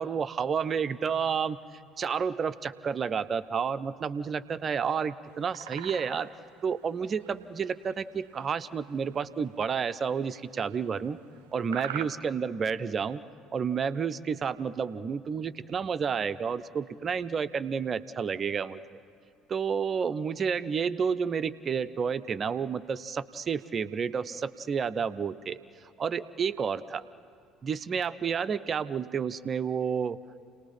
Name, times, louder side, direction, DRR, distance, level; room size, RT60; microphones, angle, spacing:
voice 1, 0.0-1.6 2.0-6.3 6.6-11.2 11.5-13.2 13.5-18.8 19.5-25.6 26.0-27.0 27.6-30.2, right 6 dB, 35° right, 13 dB, 0.7 m, -30 dB
sound 1, 5.3-6.5 7.0-7.3 7.6-8.5 9.3-9.4 10.0-11.1 11.7-12.1, right 11 dB, 70° right, 0.7 m, -40 dB
29.5 x 19.0 x 5.8 m, 2.4 s
figure-of-eight pair, 55°, 0 cm